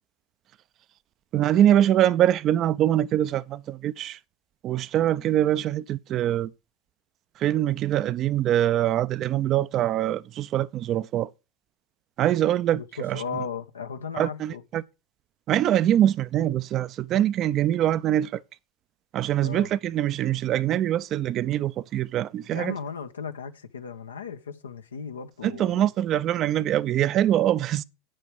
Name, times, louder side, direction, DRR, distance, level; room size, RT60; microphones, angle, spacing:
voice 1, 1.3-4.2 4.6-6.5 7.4-11.3 12.2-13.2 14.2-14.8 15.5-18.4 19.1-22.8 25.4-27.8, right 12 dB, 40° right, 0.6 m, -23 dB
voice 2, 12.7-14.6 19.4-19.7 22.5-25.9, left 6 dB, 85° left, 1.1 m, -36 dB
9.2 x 7.8 x 4.7 m
hypercardioid pair, 90°, 0 cm